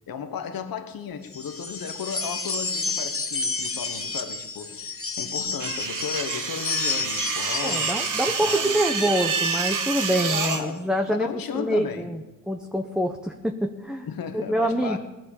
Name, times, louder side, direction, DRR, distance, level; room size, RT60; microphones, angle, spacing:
voice 1, 0.1-8.8 10.3-12.1 14.1-15.0, left 7 dB, 85° left, 1.3 m, -35 dB
sound 1, 1.2-10.7, left 4 dB, 40° left, 1.7 m, -31 dB
sound 2, 5.6-10.6, right 6 dB, 65° right, 1.5 m, -28 dB
voice 2, 7.6-11.3 11.5-14.1 14.3-15.0, right 1 dB, ahead, 1.1 m, -26 dB
18.5 x 10.5 x 7.2 m
cardioid pair, 75°, 34 cm